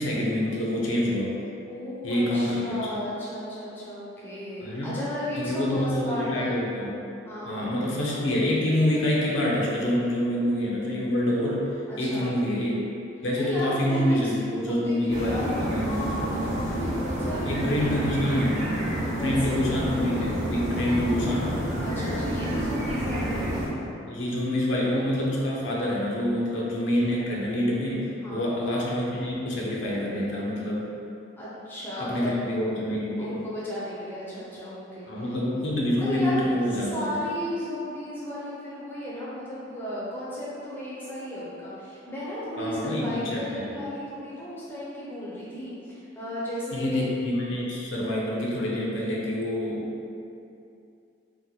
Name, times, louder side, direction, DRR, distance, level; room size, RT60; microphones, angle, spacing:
voice 1, 0.0-1.3 2.0-3.0 4.6-5.0 5.4-6.9 7.5-11.7 12.0-12.8 13.2-16.0 17.5-18.7 19.2-21.6 24.1-30.9 32.0-33.3 35.1-37.2 42.6-43.7 46.7-49.9, left 1 dB, 65° left, -4 dB, 0.5 m, -27 dB
voice 2, 1.7-6.6 7.2-7.9 11.9-12.3 13.3-18.3 19.1-19.6 21.8-23.6 28.2-28.5 31.4-32.4 33.2-35.3 36.0-47.0, left 1 dB, 10° left, -9 dB, 0.5 m, -34 dB
sound 1, 15.1-23.7, right 1 dB, 35° right, 0.5 m, -29 dB
2.8 x 2.1 x 3.8 m, 2.7 s
head